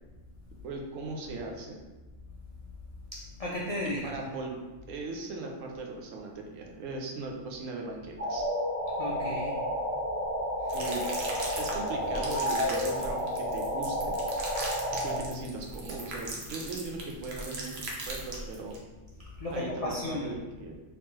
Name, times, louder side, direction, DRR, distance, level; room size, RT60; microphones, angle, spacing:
voice 1, 0.6-1.8 4.0-4.6 4.9-8.5 10.7-11.0 11.6-14.2 15.0-18.8 19.5-20.8, right 3 dB, 90° right, 1 dB, 1.0 m, -38 dB
voice 2, 3.1-4.0 9.0-9.6 10.6-10.8 19.4-20.3, left 1 dB, 65° left, -5 dB, 0.3 m, -34 dB
sound 1, 8.2-15.2, equal, 30° right, 1.3 m, -31 dB
sound 2, 10.7-18.8, right 2 dB, 60° right, 0.9 m, -39 dB
3.3 x 3.0 x 3.0 m, 1.2 s
omnidirectional pair, 1.3 m